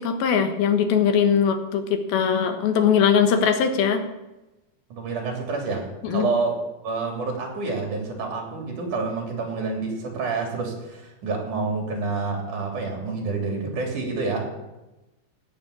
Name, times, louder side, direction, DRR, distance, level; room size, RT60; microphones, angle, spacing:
voice 1, 0.0-4.0 6.0-6.3, left 7 dB, 80° left, 6 dB, 3.2 m, -21 dB
voice 2, 4.9-14.4, right 3 dB, 60° right, 1 dB, 4.5 m, -28 dB
17.0 x 7.0 x 8.6 m, 1.0 s
omnidirectional pair, 4.2 m